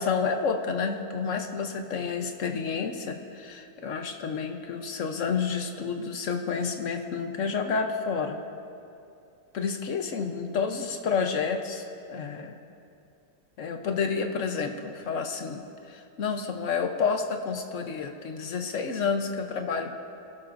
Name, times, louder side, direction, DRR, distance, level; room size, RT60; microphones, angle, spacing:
voice 1, 0.0-8.4 9.5-12.6 13.6-20.0, left 5 dB, 55° left, 5 dB, 1.2 m, -30 dB
25.5 x 12.0 x 2.6 m, 2.6 s
omnidirectional pair, 1.7 m